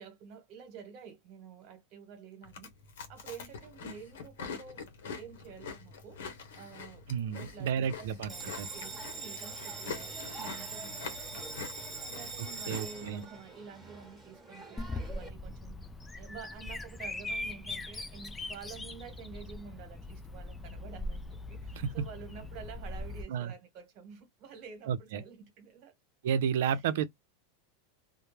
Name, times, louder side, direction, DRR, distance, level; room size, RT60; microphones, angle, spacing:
voice 1, 0.0-2.7 3.1-4.8 5.1-6.2 6.6-11.4 12.0-15.9 16.2-25.9 26.6-27.0, right 7 dB, 50° right, 1.1 m, -49 dB
Chewing mastication, 2.4-13.2, left 5 dB, 80° left, 0.8 m, -45 dB
voice 2, 7.1-8.3 8.6-8.7 12.4-13.2 21.8-22.1 23.3-23.5 24.9-25.2 26.2-27.1, right 8 dB, 75° right, 0.5 m, -31 dB
Bell, 8.3-15.3, right 4 dB, 10° right, 1.0 m, -43 dB
Bird vocalization bird call bird song, 14.8-23.2, left 2 dB, 10° left, 0.4 m, -41 dB
2.2 x 2.0 x 3.1 m
supercardioid pair, 125°, 0 cm